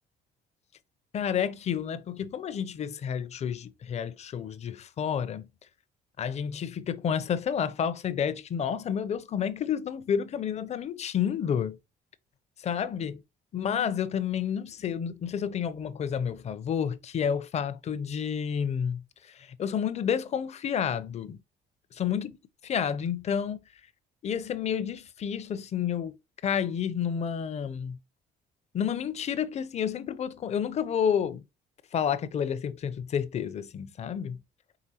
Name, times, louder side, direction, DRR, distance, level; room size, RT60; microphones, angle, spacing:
voice 1, 1.1-5.4 6.2-11.8 12.6-13.2 13.5-19.0 19.4-21.4 22.0-22.4 22.6-23.6 24.2-26.2 26.4-28.0 28.7-31.4 31.9-34.4, left 8 dB, 40° left, 0.6 m, -30 dB
4.8 x 3.5 x 2.8 m
cardioid pair, 110°, 17 cm